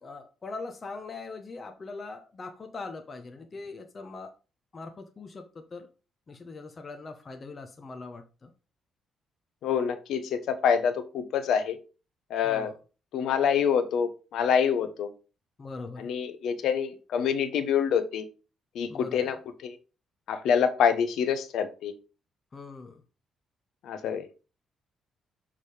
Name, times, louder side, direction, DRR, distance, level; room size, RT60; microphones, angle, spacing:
voice 1, 0.0-4.3 4.7-5.9 6.3-8.5 12.4-12.7 15.6-16.1 18.9-19.2 22.5-23.0, left 3 dB, 35° left, 5 dB, 1.0 m, -41 dB
voice 2, 9.6-11.8 12.3-12.7 13.1-15.1 16.0-18.3 18.7-19.4 19.6-19.8 20.3-21.9 23.8-24.3, left 7 dB, 75° left, 10 dB, 0.9 m, -26 dB
6.4 x 3.7 x 4.9 m, 0.33 s
cardioid pair, 90°, 0 cm